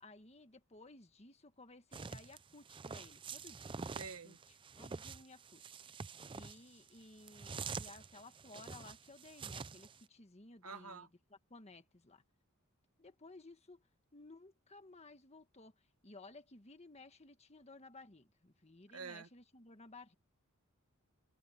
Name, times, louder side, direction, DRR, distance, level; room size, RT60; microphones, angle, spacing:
voice 1, 0.0-5.8 6.3-12.2 13.0-13.8 14.1-15.8 16.0-20.2, left 2 dB, 30° left, 1.6 m, -57 dB
sound 1, 1.9-10.0, right 5 dB, 25° right, 0.4 m, -47 dB
voice 2, 4.0-4.4 10.6-11.1 18.9-19.3, right 5 dB, 85° right, 1.5 m, -47 dB
head